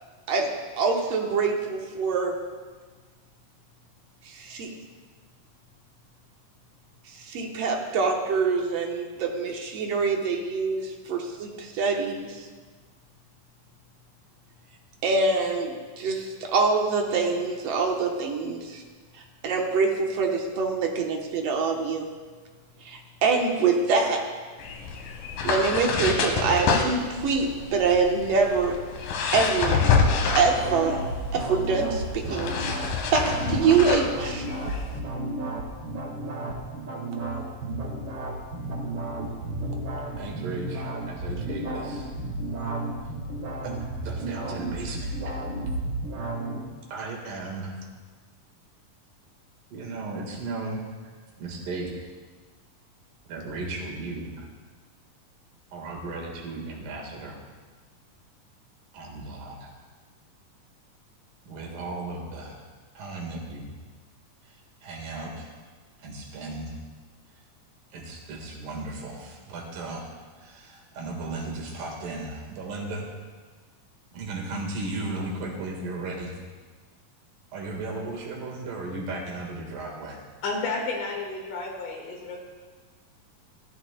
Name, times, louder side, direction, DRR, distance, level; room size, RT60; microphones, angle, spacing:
voice 1, 0.8-2.4 4.3-4.7 7.2-12.5 15.0-18.8 19.4-22.1 22.8-24.2 25.4-28.8 29.3-29.8 30.4-31.0 31.3-32.6 33.1-34.5, right 4 dB, 65° right, 1 dB, 1.8 m, -25 dB
sound 1, 24.6-35.0, left 5 dB, 85° left, 2.7 m, -28 dB
sound 2, 29.6-46.6, right 2 dB, 45° right, 1.9 m, -32 dB
voice 2, 40.2-42.1 43.6-43.8 44.0-45.4 46.9-47.7 49.7-50.9 51.4-51.9 53.3-54.5 55.7-57.4 58.9-59.7 61.5-62.6 63.0-63.7 64.4-65.5 66.0-66.7 67.9-70.0 70.4-73.1 74.1-76.4 77.5-80.2, right 2 dB, 85° right, -1 dB, 3.4 m, -35 dB
voice 3, 80.4-82.4, left 3 dB, 70° left, -2 dB, 3.3 m, -31 dB
15.0 x 13.0 x 2.2 m, 1.4 s
omnidirectional pair, 3.8 m